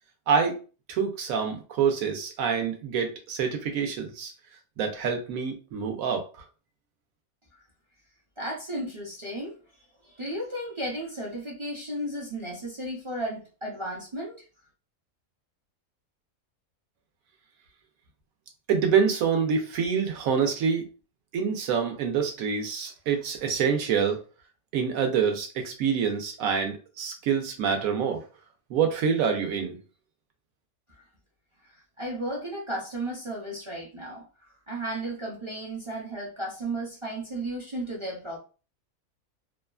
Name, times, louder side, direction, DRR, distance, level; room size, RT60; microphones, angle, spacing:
voice 1, 0.3-0.6 0.9-4.3 4.8-6.3 18.7-20.9 21.3-24.2 24.7-28.2 28.7-29.8, right 6 dB, 80° right, 1.1 m, -26 dB
voice 2, 8.4-9.6 10.0-14.4 32.0-34.2 34.7-38.4, right 1 dB, 45° right, 0.3 m, -34 dB
2.8 x 2.3 x 2.3 m
omnidirectional pair, 1.5 m